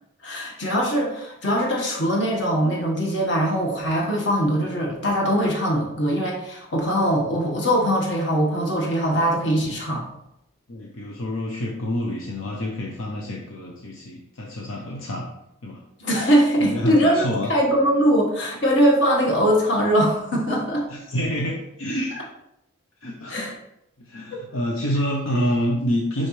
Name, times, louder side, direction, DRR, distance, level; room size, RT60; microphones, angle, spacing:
voice 1, 0.2-10.0 16.0-20.8 23.3-23.5 24.3-24.4, equal, 55° left, -1 dB, 1.6 m, -21 dB
voice 2, 10.7-15.3 15.6-15.8 16.6-17.5 20.9-22.2 23.0-23.5 24.0-26.3, equal, 80° left, -1 dB, 0.8 m, -27 dB
6.3 x 5.5 x 3.2 m, 0.83 s
head